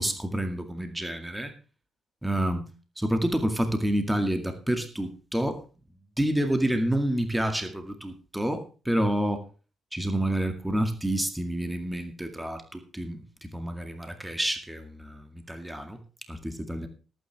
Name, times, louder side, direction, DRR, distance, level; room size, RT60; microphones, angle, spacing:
voice 1, 0.0-1.5 2.2-2.7 3.0-5.6 6.2-9.4 9.9-16.0 16.3-16.9, right 1 dB, 5° right, 6 dB, 2.1 m, -28 dB
19.5 x 9.1 x 3.5 m, 0.35 s
cardioid pair, 90°, 0 cm